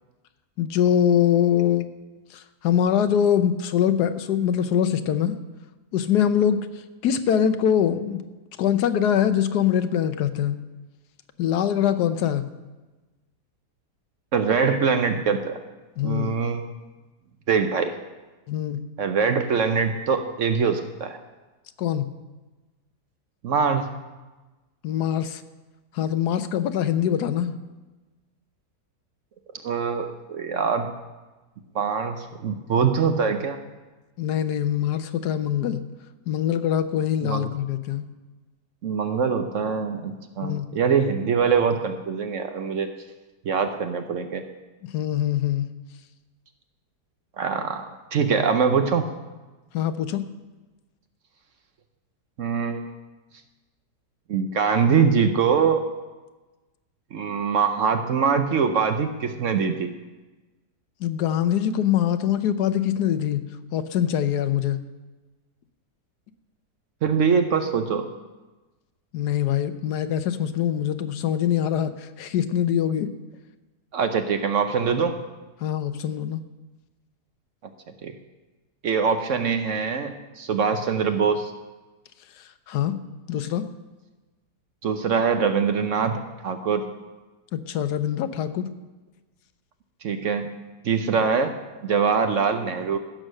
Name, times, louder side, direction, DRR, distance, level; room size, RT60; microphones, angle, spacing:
voice 1, 0.6-1.9 2.3-5.4 5.9-6.7 7.0-8.2 8.6-10.6 11.4-12.4 16.0-16.3 18.5-18.8 21.8-22.1 24.8-25.4 25.9-27.6 34.2-35.8 36.3-38.1 40.4-40.7 44.9-45.7 49.7-50.2 61.0-63.4 63.7-64.8 69.1-73.1 75.6-76.4 82.7-83.0 83.3-83.7 87.5-88.7, left 9 dB, 75° left, 11 dB, 1.3 m, -23 dB
voice 2, 14.3-15.6 16.0-16.6 17.5-17.9 19.0-21.2 23.4-23.9 29.6-30.9 31.7-33.6 37.2-37.5 38.8-42.9 43.4-44.4 47.4-49.0 52.4-52.8 54.3-55.9 57.1-59.9 67.0-68.1 73.9-75.2 78.0-78.1 78.8-81.5 84.8-87.0 90.0-90.6 90.8-91.6 91.8-93.0, right 6 dB, 60° right, 7 dB, 0.9 m, -23 dB
15.0 x 6.4 x 6.4 m, 1.2 s
omnidirectional pair, 1.8 m